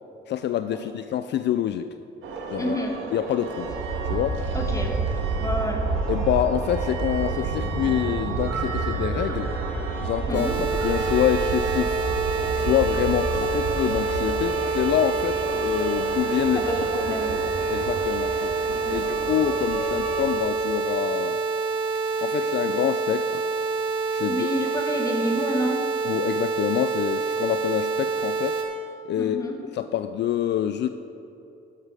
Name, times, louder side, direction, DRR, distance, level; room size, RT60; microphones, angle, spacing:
voice 1, 0.3-1.9 2.5-2.8 3.1-3.7 4.1-4.4 6.1-9.5 10.0-10.5 10.8-12.0 12.5-16.6 17.1-17.4 17.7-21.4 22.2-23.4 24.1-24.6 26.0-28.6 29.0-30.9, left 10 dB, 60° left, 10 dB, 0.4 m, -26 dB
sound 1, 2.2-20.4, right 3 dB, 90° right, 1.4 m, -29 dB
voice 2, 2.6-3.0 4.5-4.9 5.4-5.8 10.3-10.6 16.6-17.3 18.7-19.1 24.3-25.8 29.2-29.6, equal, 15° left, 1 dB, 1.8 m, -29 dB
sound 2, 10.3-28.6, right 4 dB, 65° right, 2.1 m, -27 dB
12.0 x 6.7 x 4.9 m, 2.9 s
cardioid pair, 90°, 20 cm